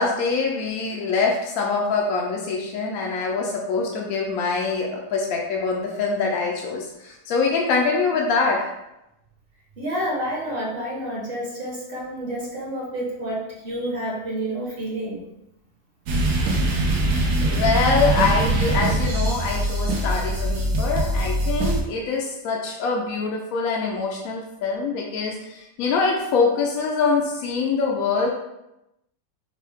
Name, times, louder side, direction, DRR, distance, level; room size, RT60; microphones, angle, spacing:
voice 1, 0.0-8.7 17.4-28.3, left 4 dB, 70° left, -1 dB, 1.0 m, -24 dB
voice 2, 9.8-15.2, right 1 dB, 40° right, -5 dB, 1.1 m, -29 dB
sound 1, 16.1-21.8, right 2 dB, 75° right, 1.2 m, -22 dB
5.4 x 2.2 x 3.4 m, 0.88 s
omnidirectional pair, 1.7 m